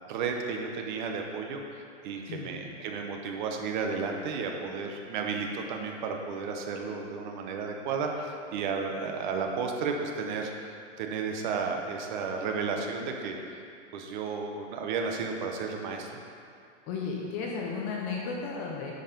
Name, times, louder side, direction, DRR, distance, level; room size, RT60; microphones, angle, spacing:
voice 1, 0.1-13.6 13.9-16.1, right 5 dB, 40° right, 2 dB, 0.9 m, -33 dB
voice 2, 16.9-18.9, left 4 dB, 20° left, -2 dB, 0.5 m, -34 dB
9.6 x 4.7 x 5.1 m, 2.4 s
hypercardioid pair, 160°, 36 cm